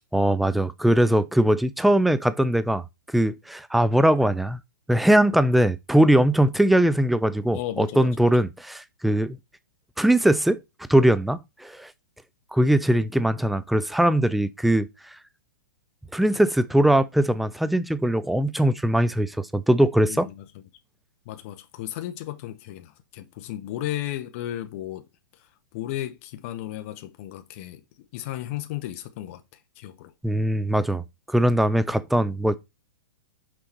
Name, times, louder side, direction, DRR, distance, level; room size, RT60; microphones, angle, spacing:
voice 1, 0.1-2.8 3.1-4.6 4.9-9.4 10.0-10.6 10.9-11.9 12.5-14.9 16.1-20.3 30.2-32.6, right 1 dB, ahead, 0.3 m, -21 dB
voice 2, 7.5-8.3 20.1-20.4 21.2-25.1 25.3-27.8 28.1-29.4 29.8-30.1 31.9-32.0, left 13 dB, 40° left, 0.9 m, -34 dB
6.3 x 4.8 x 4.4 m
hypercardioid pair, 150°, 11 cm